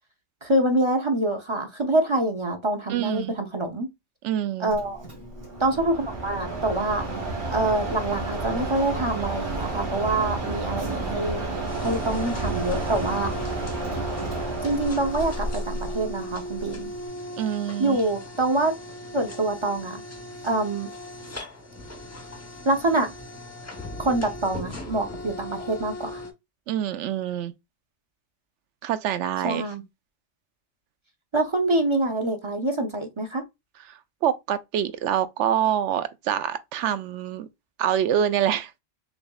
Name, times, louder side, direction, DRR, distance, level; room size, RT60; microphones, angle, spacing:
voice 1, 0.4-3.9 4.6-5.0 5.6-7.0 7.5-11.4 11.8-13.3 14.6-16.9 17.8-18.7 19.1-20.0 20.4-20.9 22.6-23.1 24.0-26.2 29.4-29.8 31.3-33.4, right 2 dB, 30° right, 0.7 m, -25 dB
voice 2, 2.9-3.3 4.2-4.7 17.4-18.0 26.7-27.5 28.8-29.6 34.2-37.5 37.8-38.7, right 10 dB, 85° right, 0.9 m, -25 dB
Mechanisms, 4.7-17.1, right 2 dB, 55° right, 1.9 m, -31 dB
sound 1, 11.7-26.3, left 1 dB, 15° left, 0.7 m, -38 dB
6.0 x 2.6 x 2.3 m
omnidirectional pair, 1.2 m